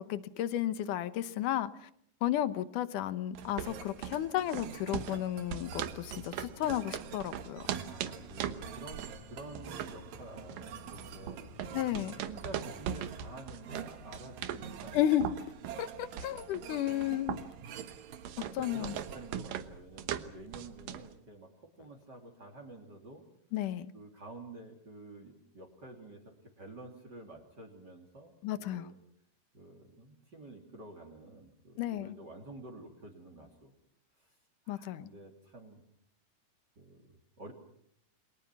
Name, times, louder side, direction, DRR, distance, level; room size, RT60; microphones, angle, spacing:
voice 1, 0.0-1.7 2.2-7.7 11.7-12.1 14.9-15.3 15.8-17.4 18.6-18.9 23.5-23.9 28.4-28.9 31.8-32.2 34.7-35.1, left 12 dB, 75° left, 13 dB, 2.6 m, -33 dB
sound 1, 3.4-19.4, right 9 dB, 65° right, 2.5 m, -48 dB
sound 2, 3.4-21.2, right 9 dB, 85° right, 2.9 m, -41 dB
voice 2, 7.7-11.5 12.2-15.1 18.3-23.2 23.9-28.3 28.6-29.0 29.5-33.7 34.2-34.3 34.6-35.8 36.8-37.1 37.4-37.5, right 2 dB, 30° right, 4 dB, 3.2 m, -50 dB
sound 3, 7.9-13.4, left 6 dB, 50° left, 4.2 m, -54 dB
29.5 x 23.0 x 6.1 m, 0.68 s
omnidirectional pair, 3.8 m